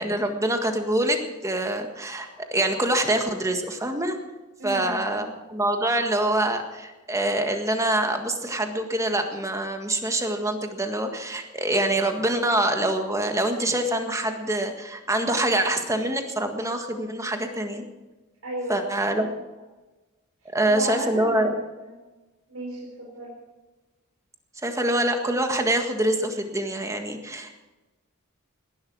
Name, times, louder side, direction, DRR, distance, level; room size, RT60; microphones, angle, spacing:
voice 1, 0.0-4.2 4.6-17.8 18.7-19.3 20.5-21.5 24.6-27.6, right 1 dB, 15° right, 5 dB, 1.7 m, -25 dB
voice 2, 4.6-5.3 18.4-19.3 20.4-22.0 22.5-23.3, right 1 dB, 80° right, -4 dB, 4.4 m, -35 dB
18.5 x 11.0 x 6.3 m, 1.2 s
head